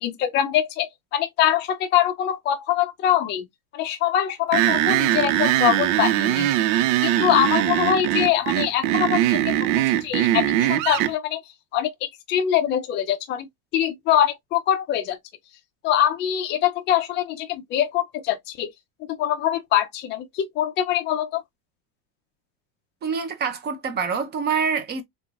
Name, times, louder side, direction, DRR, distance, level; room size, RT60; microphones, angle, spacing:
voice 1, 0.0-3.4 3.7-6.5 7.0-11.4 11.7-13.5 13.7-15.2 15.8-18.7 19.0-21.4, left 11 dB, 25° left, 0.5 m, -23 dB
sound 1, 4.5-11.1, right 13 dB, 60° right, 0.5 m, -21 dB
voice 2, 23.0-25.0, right 6 dB, 25° right, 0.7 m, -26 dB
3.6 x 3.6 x 2.4 m
cardioid pair, 165°, 42 cm